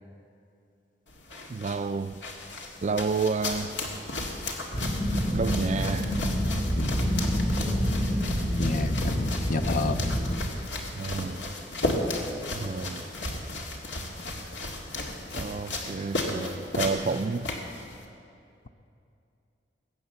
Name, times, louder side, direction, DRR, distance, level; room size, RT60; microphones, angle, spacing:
sound 1, 1.1-18.0, left 2 dB, 80° left, 2.0 m, -34 dB
voice 1, 1.5-2.2 2.8-3.8 5.3-6.2 11.0-11.4 12.6-13.1 15.3-17.5, right 4 dB, 40° right, 0.4 m, -30 dB
sound 2, 4.7-10.4, equal, 65° left, 2.1 m, -27 dB
voice 2, 8.6-10.0, left 3 dB, 50° left, 0.7 m, -30 dB
21.5 x 8.7 x 6.9 m
head